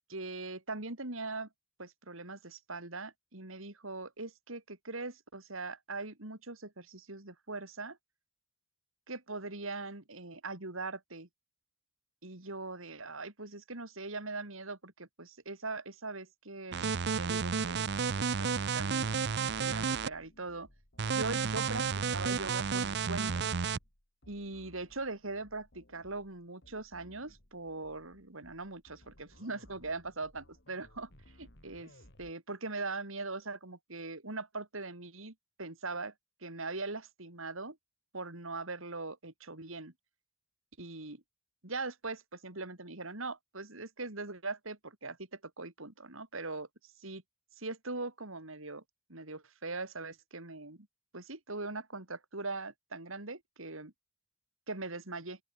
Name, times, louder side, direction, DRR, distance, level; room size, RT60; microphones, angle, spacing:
voice 1, 0.1-1.5 1.8-8.0 9.1-11.3 12.2-17.9 18.2-20.7 21.1-23.5 24.3-31.1 31.4-31.9 32.2-36.1 36.4-37.8 38.1-39.9 40.8-41.2 41.6-46.7 47.0-47.2 47.6-48.8 49.1-50.9 51.1-53.9 54.7-55.4, right 3 dB, 70° right, 3.6 m, -41 dB
sound 1, 16.7-20.1 21.0-23.8, right 5 dB, 55° right, 0.6 m, -32 dB
sound 2, 19.5-32.3, left 1 dB, 55° left, 4.1 m, -61 dB
open air
head